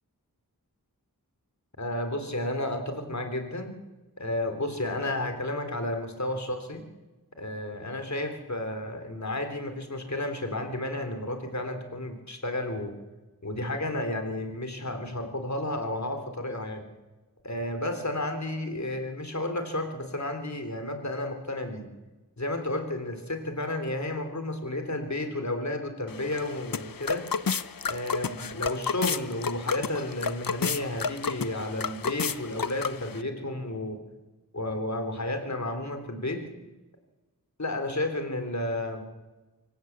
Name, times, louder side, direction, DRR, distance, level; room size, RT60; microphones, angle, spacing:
voice 1, 1.8-3.7 4.2-6.8 7.4-12.9 13.4-16.9 17.4-21.9 22.4-27.2 27.8-34.0 34.5-36.4 37.6-39.0, left 1 dB, 45° left, 6 dB, 3.6 m, -32 dB
sound 1, 26.1-33.2, left 6 dB, 65° left, 0.7 m, -32 dB
25.0 x 15.5 x 8.2 m, 1.1 s
wide cardioid pair, 60°, 37 cm